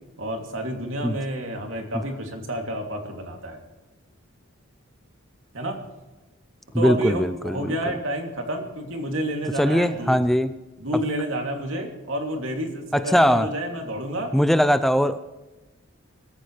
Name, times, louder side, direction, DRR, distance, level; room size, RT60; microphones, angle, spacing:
voice 1, 0.2-3.6 5.5-5.8 6.8-10.2 10.8-14.3, right 1 dB, 75° right, 2 dB, 2.9 m, -29 dB
voice 2, 6.7-7.7 9.6-10.6 12.9-13.5 14.3-15.2, equal, ahead, 11 dB, 0.4 m, -20 dB
23.5 x 14.0 x 3.3 m, 1.1 s
head